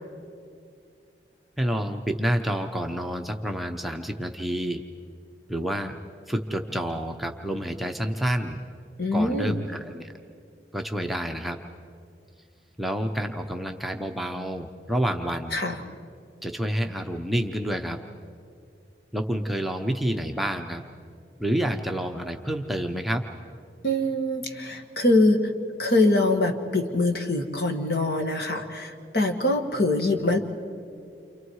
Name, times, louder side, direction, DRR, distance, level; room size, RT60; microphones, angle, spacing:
voice 1, 1.6-4.8 5.5-5.9 6.3-8.6 9.1-10.1 10.7-11.6 12.8-15.6 16.4-18.0 19.1-20.8 21.4-23.2, equal, ahead, 3 dB, 0.8 m, -28 dB
voice 2, 9.0-9.6 15.5-15.8 23.8-25.5 25.8-30.4, left 2 dB, 60° left, 4 dB, 1.9 m, -23 dB
29.5 x 27.0 x 4.8 m, 2.4 s
head